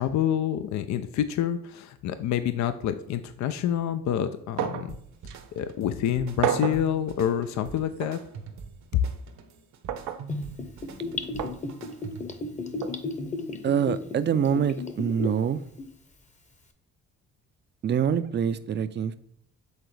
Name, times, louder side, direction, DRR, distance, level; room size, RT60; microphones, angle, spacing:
voice 1, 0.0-5.0 5.6-8.2 8.9-9.0, left 10 dB, 65° left, 0.5 m, -27 dB
sound 1, 4.6-4.9 5.3-5.4 6.4-6.9 8.0-8.2 9.9-10.2 11.4-11.6 12.8-13.0, right 9 dB, 85° right, 0.6 m, -29 dB
sound 2, 4.9-12.5, right 5 dB, 65° right, 1.0 m, -44 dB
Gurgling / Bathtub (filling or washing), 10.3-15.4 15.8-15.9, left 3 dB, 25° left, 0.9 m, -33 dB
voice 2, 13.6-15.6 17.8-19.2, right 8 dB, 35° right, 0.5 m, -25 dB
8.1 x 3.9 x 3.3 m
cardioid pair, 90°, 30 cm